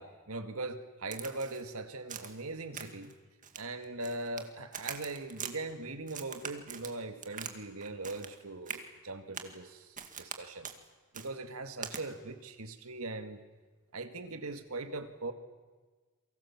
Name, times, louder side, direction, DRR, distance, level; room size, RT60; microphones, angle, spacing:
voice 1, 0.0-3.1 3.6-9.9 10.2-10.7 11.1-13.4 13.9-15.3, right 2 dB, 80° right, 8 dB, 2.0 m, -40 dB
Crack, 1.1-1.6 2.1-2.4 2.7-3.1 3.4-4.5 4.7-5.5 6.1-7.6 7.8-8.4 8.7-8.8 9.3-9.6 10.0-10.4 10.6-10.8 11.1-11.3 11.8-12.0, right 7 dB, 40° right, 2.0 m, -43 dB
29.0 x 23.5 x 7.3 m, 1.4 s
head